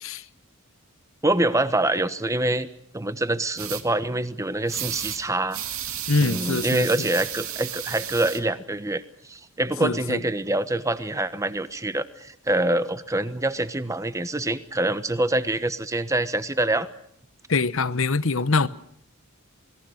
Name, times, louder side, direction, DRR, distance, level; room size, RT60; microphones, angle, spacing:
voice 1, 1.2-5.6 6.2-16.9, right 1 dB, 15° right, 1.1 m, -25 dB
sound 1, 3.6-3.8 4.7-5.2 5.5-8.4, right 10 dB, 70° right, 2.3 m, -33 dB
voice 2, 6.1-6.8 9.8-10.2 17.5-18.7, left 3 dB, 60° left, 1.0 m, -23 dB
27.5 x 20.5 x 6.5 m
head